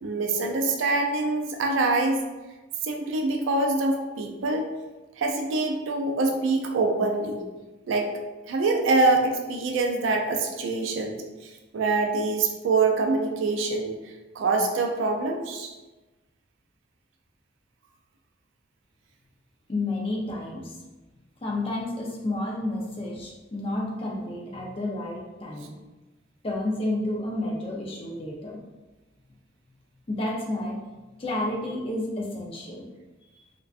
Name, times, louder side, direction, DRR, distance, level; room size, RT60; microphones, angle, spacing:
voice 1, 0.0-2.2 2.8-4.7 5.2-7.4 7.9-8.1 8.5-14.0 14.3-15.7, right 3 dB, 75° right, 2 dB, 0.3 m, -25 dB
voice 2, 19.7-20.8 21.4-25.7 26.4-28.6 30.1-30.8 31.2-32.9, left 1 dB, 30° left, -2 dB, 0.4 m, -30 dB
2.4 x 2.2 x 2.3 m, 1.2 s
head